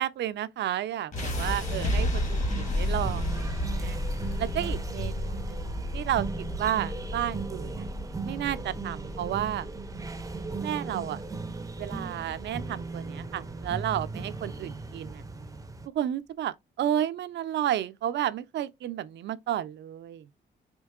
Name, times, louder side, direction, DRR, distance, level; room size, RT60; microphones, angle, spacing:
voice 1, 0.0-4.0 4.4-6.3 6.6-7.9 8.2-9.7 10.6-11.2 11.8-15.2 15.9-20.2, right 11 dB, 65° right, 0.4 m, -32 dB
sound 1, 1.1-13.2, left 1 dB, 40° left, 1.5 m, -32 dB
sound 2, 1.1-15.9, right 3 dB, 15° right, 0.5 m, -38 dB
4.5 x 2.8 x 2.3 m
cardioid pair, 90°, 20 cm